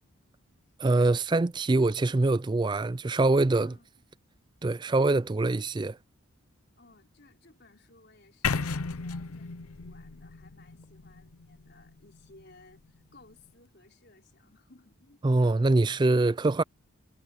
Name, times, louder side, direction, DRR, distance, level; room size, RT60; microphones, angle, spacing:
voice 1, 0.8-3.7 4.6-6.0 15.2-16.6, right 2 dB, 20° right, 0.3 m, -24 dB
voice 2, 6.8-15.2, left 2 dB, 50° left, 5.0 m, -59 dB
sound 1, 8.4-12.4, left 5 dB, 85° left, 0.8 m, -34 dB
head